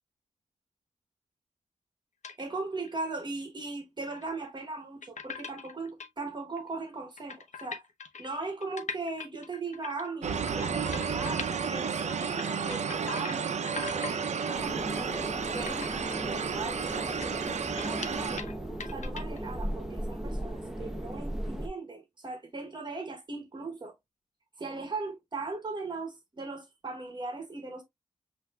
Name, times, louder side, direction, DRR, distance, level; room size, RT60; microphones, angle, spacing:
sound 1, 2.2-2.4 2.8-2.9 4.1-4.3 5.0-6.1 6.6-6.7 6.9-7.0 7.2-11.6 11.8-13.4 13.7-14.2 14.5-14.7 15.2-15.3 15.7-18.5 18.8-19.4, left 5 dB, 75° left, 0.9 m, -41 dB
voice 1, 2.4-7.8 8.2-13.5 13.9-15.2 15.5-18.5 18.9-23.9 24.6-27.8, right 3 dB, 35° right, 1.1 m, -39 dB
sound 2, 10.2-18.4, right 6 dB, 70° right, 0.6 m, -32 dB
sound 3, 14.5-21.7, right 1 dB, 5° right, 0.9 m, -36 dB
8.0 x 2.7 x 2.3 m
wide cardioid pair, 140°, 12 cm